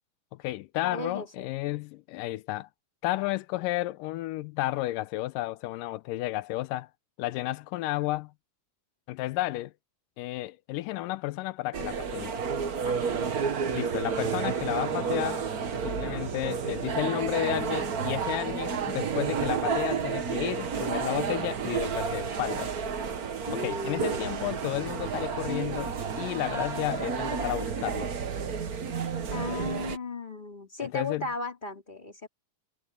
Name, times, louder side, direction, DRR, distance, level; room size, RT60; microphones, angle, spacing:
voice 1, 0.3-2.7 3.0-6.9 7.2-8.3 9.1-9.7 10.2-12.4 13.7-15.4 15.7-22.7 23.5-28.1 30.8-31.3, left 17 dB, 90° left, 2.3 m, -32 dB
voice 2, 0.8-1.5 12.8-13.3 23.5-24.3 29.3-32.3, left 3 dB, 15° left, 2.8 m, -36 dB
sound 1, 11.7-30.0, right 6 dB, 70° right, 0.8 m, -31 dB
omnidirectional pair, 3.8 m